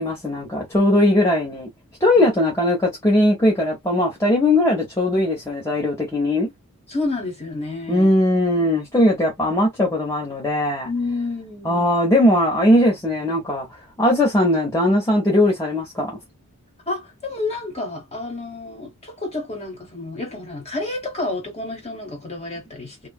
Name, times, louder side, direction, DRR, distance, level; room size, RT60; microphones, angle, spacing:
voice 1, 0.0-1.7 2.0-6.5 7.9-10.9 11.6-13.7 14.0-16.2, left 1 dB, 15° left, 0.8 m, -19 dB
voice 2, 6.9-8.1 10.8-11.8 16.9-23.1, left 2 dB, 30° left, 1.2 m, -29 dB
2.8 x 2.3 x 2.3 m
head